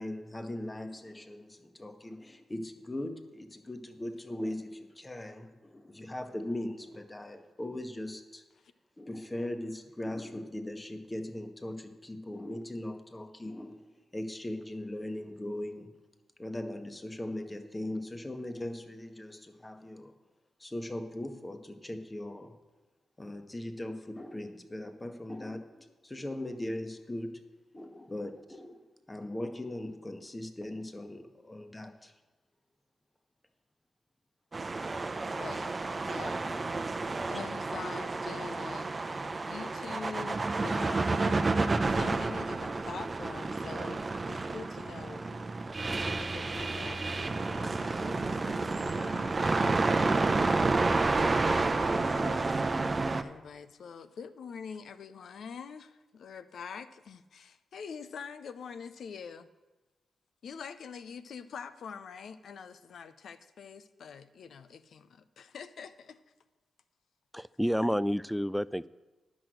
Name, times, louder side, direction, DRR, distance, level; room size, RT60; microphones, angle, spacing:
voice 1, 0.0-8.4 9.0-13.9 14.1-15.9 16.4-20.2 20.6-22.5 23.2-27.4 27.7-32.1, left 1 dB, 20° left, 7 dB, 1.2 m, -39 dB
sound 1, 34.5-53.2, right 3 dB, 40° right, 0.7 m, -30 dB
voice 2, 35.3-36.5 37.3-39.2 39.5-45.3 46.0-49.5 51.5-59.5 60.4-66.2, left 6 dB, 75° left, 12 dB, 0.6 m, -45 dB
voice 3, 67.3-68.9, equal, ahead, 16 dB, 0.3 m, -29 dB
10.0 x 6.2 x 7.7 m, 1.1 s
cardioid pair, 55°, 0 cm